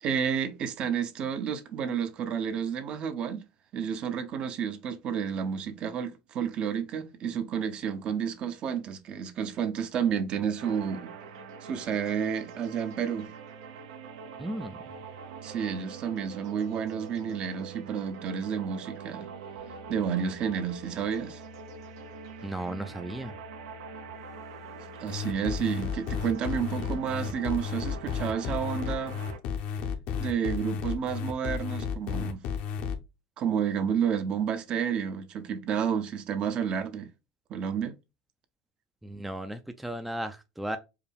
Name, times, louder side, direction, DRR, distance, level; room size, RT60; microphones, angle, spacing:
voice 1, 0.0-3.4 3.7-11.1 11.6-13.3 15.4-19.3 19.9-21.4 25.0-29.2 30.2-32.4 33.4-37.1 37.5-37.9, right 7 dB, 45° right, 0.7 m, -30 dB
sound 1, 10.6-29.4, right 4 dB, 80° right, 0.7 m, -44 dB
voice 2, 14.4-14.8 22.4-23.3 39.0-40.8, right 1 dB, 5° right, 0.4 m, -35 dB
sound 2, 25.1-32.9, left 7 dB, 55° left, 0.7 m, -32 dB
4.7 x 2.2 x 3.4 m
supercardioid pair, 110°, 3 cm